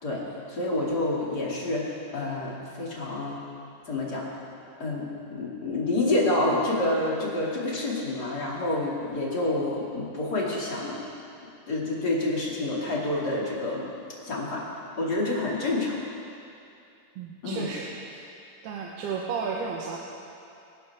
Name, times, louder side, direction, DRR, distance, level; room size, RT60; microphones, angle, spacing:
voice 1, 0.0-3.4 3.9-4.3 4.8-11.0 11.7-13.9 14.2-14.6 15.0-15.9 17.4-17.7, left 2 dB, 30° left, -5 dB, 2.3 m, -28 dB
voice 2, 17.2-18.3 18.6-20.0, right 5 dB, 90° right, -2 dB, 3.0 m, -33 dB
26.0 x 11.5 x 3.5 m, 2.6 s
omnidirectional pair, 4.4 m